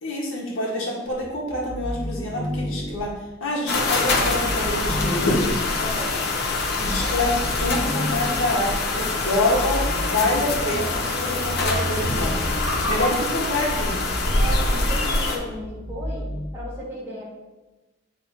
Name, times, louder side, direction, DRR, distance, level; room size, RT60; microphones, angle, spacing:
voice 1, 0.0-3.1 3.4-5.4 6.8-12.4 12.9-14.0, left 1 dB, 75° left, -3 dB, 1.7 m, -26 dB
sound 1, 1.1-3.0 3.9-5.5 6.4-8.5 9.2-16.4, equal, 30° left, 1.4 m, -33 dB
sound 2, 3.7-15.4, left 2 dB, 55° left, 1.0 m, -24 dB
voice 2, 5.8-6.1 6.9-7.3 12.7-13.2 14.4-16.3 16.5-17.2, equal, 10° right, -7 dB, 2.6 m, -35 dB
9.4 x 3.6 x 4.7 m, 1.1 s
head